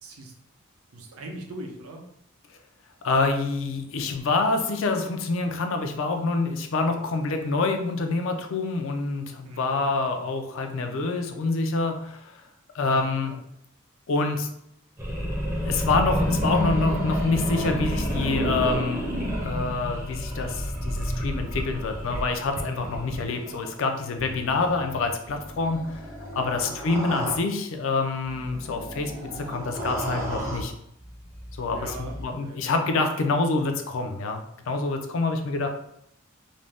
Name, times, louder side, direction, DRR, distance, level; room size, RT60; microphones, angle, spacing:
voice 1, 0.0-0.3 0.9-2.1 9.4-9.9 12.8-13.4 26.3-26.7 31.7-32.2 32.4-32.6, right 1 dB, 85° right, 2 dB, 0.6 m, -40 dB
voice 2, 3.0-12.4 12.7-13.4 14.1-14.5 15.6-19.1 19.4-26.0 26.3-30.7 31.6-35.7, left 3 dB, 65° left, 5 dB, 0.4 m, -26 dB
sound 1, 15.0-23.7 24.2-27.4 28.2-30.6 31.0-32.3, equal, 10° right, 0.5 m, -30 dB
2.5 x 2.1 x 3.3 m, 0.75 s
head